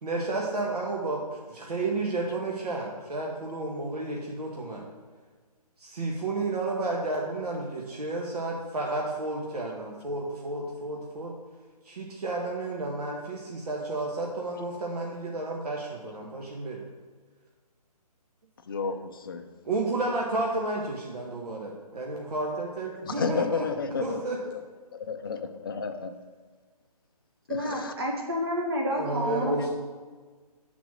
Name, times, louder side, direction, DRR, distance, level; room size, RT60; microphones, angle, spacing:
voice 1, 0.0-1.2 1.5-4.8 5.8-11.3 11.8-16.9 19.6-23.7 24.0-24.4 28.9-29.7, right 2 dB, 75° right, -1 dB, 1.0 m, -31 dB
voice 2, 18.7-19.4 23.1-24.2 24.9-26.1 27.5-27.9, left 5 dB, 35° left, 6 dB, 0.4 m, -31 dB
voice 3, 27.5-29.6, equal, 40° right, -1 dB, 1.3 m, -29 dB
6.0 x 4.0 x 6.0 m, 1.5 s
hypercardioid pair, 165°, 20 cm